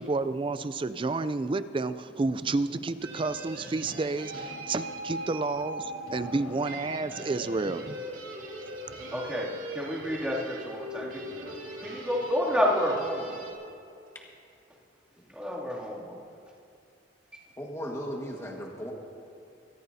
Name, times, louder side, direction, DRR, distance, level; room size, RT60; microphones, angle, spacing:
voice 1, 0.0-8.0, right 3 dB, 25° right, 13 dB, 0.4 m, -30 dB
sound 1, 3.0-13.5, right 1 dB, 90° right, 2.9 m, -40 dB
voice 2, 9.1-11.2 11.8-13.4 15.4-16.2, equal, 5° right, -7 dB, 2.6 m, -29 dB
voice 3, 17.6-18.9, equal, 15° left, -1 dB, 1.6 m, -36 dB
24.0 x 13.5 x 2.8 m, 2.5 s
head